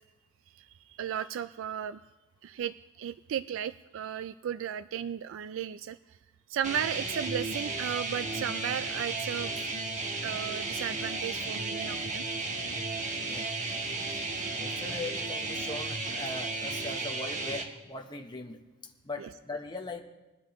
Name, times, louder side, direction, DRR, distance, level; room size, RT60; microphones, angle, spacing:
voice 1, 0.5-2.0 2.4-6.0 6.5-9.7 10.2-12.2 19.2-19.3, right 9 dB, 65° right, 13 dB, 0.3 m, -35 dB
sound 1, 6.6-17.6, right 3 dB, 35° right, 1.3 m, -34 dB
voice 2, 11.4-11.8 12.4-12.5 13.2-13.6 14.0-14.2 14.6-18.6 19.0-20.0, left 3 dB, 20° left, 3 dB, 0.9 m, -40 dB
20.5 x 10.0 x 3.0 m, 1.1 s
head